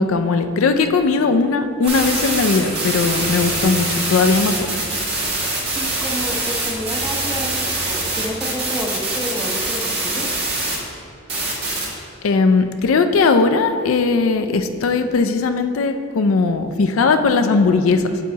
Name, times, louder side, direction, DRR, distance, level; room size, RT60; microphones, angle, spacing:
voice 1, 0.0-4.7 12.2-18.2, left 4 dB, 70° left, 8 dB, 0.4 m, -18 dB
sound 1, 1.8-8.6, right 1 dB, 25° right, 1.2 m, -33 dB
sound 2, 1.9-10.8 11.3-11.9, right 2 dB, 50° right, 1.5 m, -24 dB
voice 2, 5.7-6.4 6.6-10.3, equal, 5° right, -1 dB, 0.7 m, -30 dB
8.4 x 7.2 x 2.8 m, 2.4 s
head